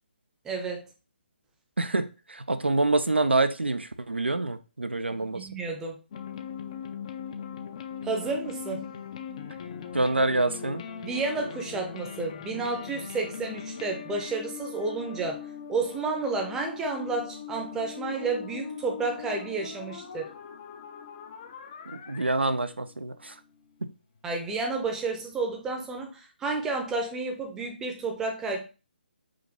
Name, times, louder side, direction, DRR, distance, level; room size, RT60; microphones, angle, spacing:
voice 1, 0.4-0.8 5.1-6.0 8.0-8.9 11.0-15.4 15.7-20.3 24.2-28.6, right 3 dB, 10° right, 0.6 m, -31 dB
voice 2, 1.8-5.5 9.9-10.8 21.9-23.3 23.8-23.9, right 2 dB, 80° right, 0.5 m, -26 dB
sound 1, 6.1-23.9, left 7 dB, 35° left, 0.5 m, -41 dB
5.0 x 2.6 x 3.7 m
figure-of-eight pair, 140°, 6 cm